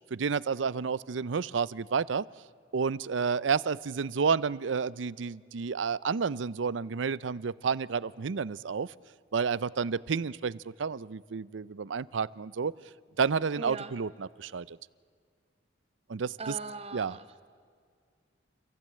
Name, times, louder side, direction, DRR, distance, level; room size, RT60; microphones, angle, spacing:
voice 1, 0.1-2.2 2.7-8.9 9.3-12.7 13.2-14.8 16.1-16.5 16.9-17.1, right 5 dB, 90° right, 20 dB, 0.5 m, -30 dB
voice 2, 13.6-13.9 16.4-17.3, right 3 dB, 35° right, 9 dB, 1.4 m, -40 dB
30.0 x 15.5 x 8.7 m, 2.1 s
head